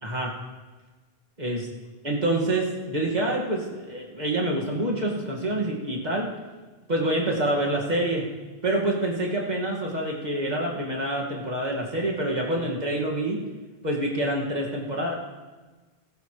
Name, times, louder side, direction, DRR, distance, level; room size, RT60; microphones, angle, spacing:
voice 1, 0.0-0.3 1.4-1.7 2.0-6.3 6.9-8.3 8.6-13.4 13.8-15.1, right 1 dB, 45° right, -3 dB, 2.4 m, -26 dB
17.0 x 14.0 x 3.3 m, 1.3 s
omnidirectional pair, 1.0 m